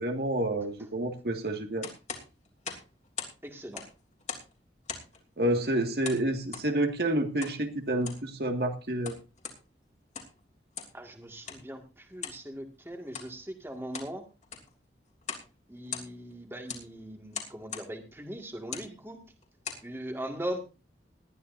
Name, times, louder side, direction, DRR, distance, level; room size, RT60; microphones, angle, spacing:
voice 1, 0.0-1.9 5.4-9.1, right 1 dB, 60° right, 5 dB, 1.9 m, -29 dB
sound 1, 1.8-3.4 3.6-4.5 4.9-5.2 6.0-6.7 7.4-7.6 7.9-8.3 8.8-9.6 10.0-10.4 10.7-11.0 11.5-11.6 12.2-12.4 13.1-13.3 13.7-14.1 14.4-14.7 15.2-15.5 15.8-16.3 16.7-16.9 17.3-17.9 18.6-18.9 19.4-19.9, left 7 dB, 40° left, 3.0 m, -40 dB
voice 2, 3.4-3.8 10.9-14.2 15.7-19.2 19.8-20.6, right 1 dB, 15° right, 4 dB, 1.9 m, -40 dB
20.0 x 12.5 x 2.6 m, 0.29 s
head